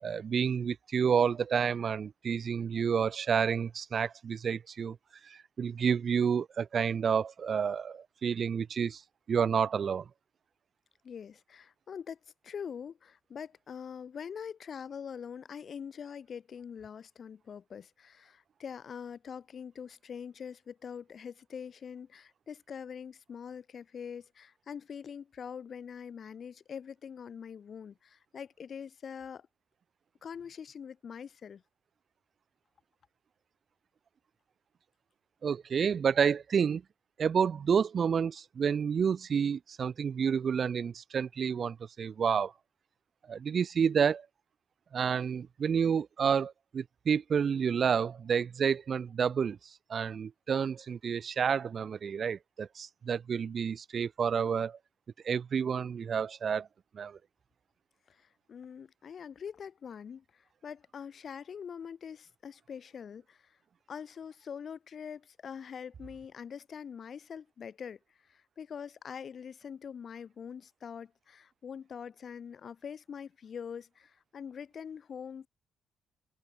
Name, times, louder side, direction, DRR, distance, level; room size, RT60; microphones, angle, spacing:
voice 1, 0.0-5.0 5.2-9.0 9.3-10.0 35.4-36.8 37.2-42.5 43.3-44.3 44.9-49.6 49.9-54.8 55.2-56.7 56.9-57.2, right 7 dB, 45° right, 0.5 m, -29 dB
voice 2, 11.0-12.2 12.4-29.5 30.2-31.6 58.1-63.5 63.9-68.0 68.3-75.5, left 7 dB, 45° left, 1.2 m, -44 dB
figure-of-eight pair, 40°, 0 cm